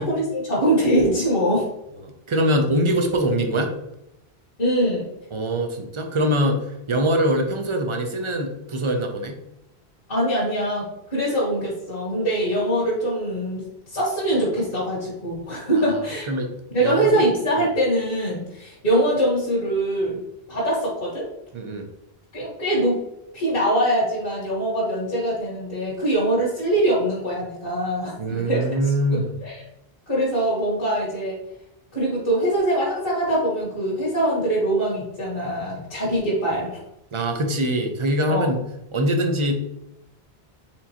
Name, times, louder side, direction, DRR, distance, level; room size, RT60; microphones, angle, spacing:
voice 1, 0.0-1.7 4.6-5.1 10.1-10.8 11.1-16.3 16.7-20.2 20.5-21.3 22.3-23.0 23.3-28.7 29.1-29.6 30.1-31.4 31.9-36.8 38.3-38.5, right 1 dB, 55° left, -6 dB, 1.7 m, -23 dB
voice 2, 2.0-3.8 5.3-9.4 15.8-15.9 16.3-16.5 16.8-17.2 21.5-21.9 28.2-29.3 37.1-38.6 38.9-39.6, right 1 dB, 35° right, 4 dB, 0.6 m, -23 dB
4.4 x 3.8 x 2.9 m, 0.84 s
omnidirectional pair, 1.1 m